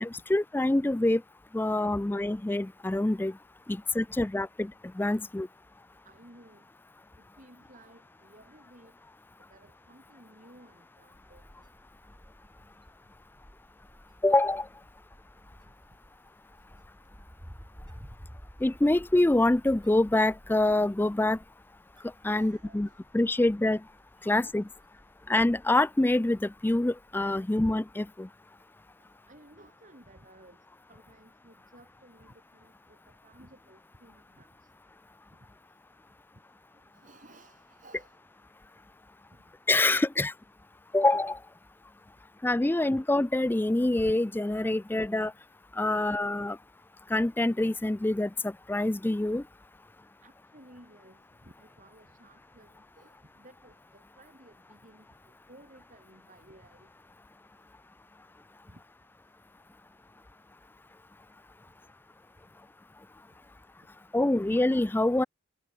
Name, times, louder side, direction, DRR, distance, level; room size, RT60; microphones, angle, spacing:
voice 1, 0.0-1.2 1.5-3.3 3.7-5.5 14.2-14.7 18.6-21.4 22.2-22.9 23.1-23.8 24.2-24.7 25.3-28.3 39.7-40.3 40.9-41.4 42.4-45.3 45.8-46.6 47.1-49.4 64.1-65.2, left 2 dB, 10° left, 0.3 m, -26 dB
voice 2, 6.0-6.7 7.2-8.9 9.5-11.4 22.3-23.0 24.2-24.4 29.3-30.6 30.9-33.0 33.2-34.5 36.9-38.2 50.2-56.9 58.7-58.8, right 1 dB, 40° right, 7.0 m, -56 dB
Wind, 11.1-27.4, equal, 20° right, 6.5 m, -54 dB
head